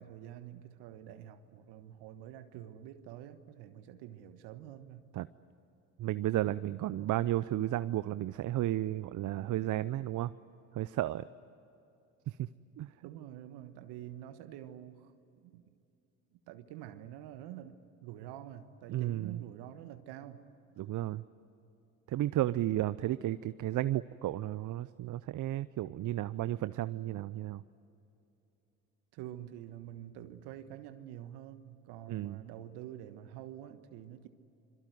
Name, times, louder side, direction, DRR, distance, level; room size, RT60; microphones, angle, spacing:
voice 1, 0.0-5.0 13.0-15.1 15.4-15.7 16.5-20.4 29.1-34.3, right 11 dB, 70° right, 10 dB, 1.4 m, -47 dB
voice 2, 6.0-10.3 10.7-11.2 12.3-12.5 12.8-12.9 18.9-19.4 20.8-21.2 22.1-27.6 32.1-32.4, right 14 dB, 45° right, 16 dB, 0.7 m, -33 dB
26.5 x 23.0 x 9.4 m, 2.8 s
hypercardioid pair, 60°, 42 cm